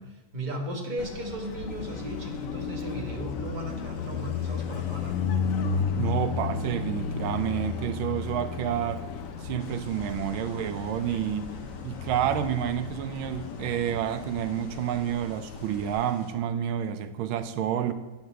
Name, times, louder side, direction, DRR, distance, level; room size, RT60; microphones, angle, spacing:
voice 1, 0.0-5.4, right 1 dB, 25° right, 0 dB, 1.3 m, -36 dB
Car passing by, 1.0-15.9, left 6 dB, 65° left, 0.8 m, -33 dB
voice 2, 6.0-9.0 9.4-11.6 11.8-17.9, right 10 dB, 85° right, 10 dB, 1.5 m, -29 dB
sound 1, 9.6-16.3, left 2 dB, 30° left, 0.9 m, -54 dB
9.5 x 4.5 x 7.3 m, 1.2 s
omnidirectional pair, 2.2 m